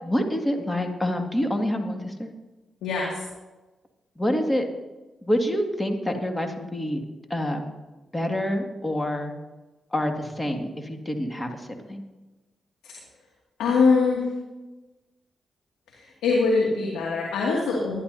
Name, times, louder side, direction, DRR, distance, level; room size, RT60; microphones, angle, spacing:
voice 1, 0.0-2.3 4.2-4.7 5.2-7.0 7.3-7.7 8.1-9.3 9.9-11.6 11.9-12.0, equal, 15° left, 4 dB, 2.2 m, -27 dB
voice 2, 2.8-3.2 12.8-12.9 13.6-14.3 15.9-18.0, left 4 dB, 85° left, -3 dB, 2.2 m, -23 dB
20.5 x 11.5 x 2.8 m, 1.1 s
supercardioid pair, 45°, 0 cm